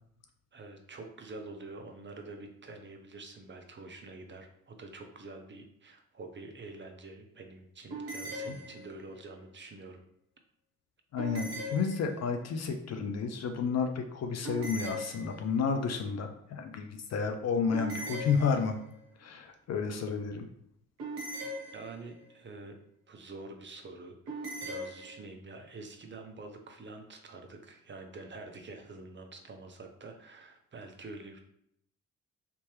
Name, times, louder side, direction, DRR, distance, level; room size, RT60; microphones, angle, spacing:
voice 1, 0.5-10.0 21.7-22.7 23.1-31.4, right 3 dB, 30° right, 4 dB, 0.7 m, -47 dB
sound 1, 7.9-9.2 11.2-12.5 14.4-15.7 17.7-19.0 21.0-22.3 24.3-25.2, right 1 dB, 75° right, 0.9 m, -40 dB
voice 2, 11.1-18.8 19.2-20.5, left 5 dB, 40° left, 6 dB, 0.5 m, -31 dB
3.4 x 2.9 x 3.1 m, 0.72 s
figure-of-eight pair, 45°, 40 cm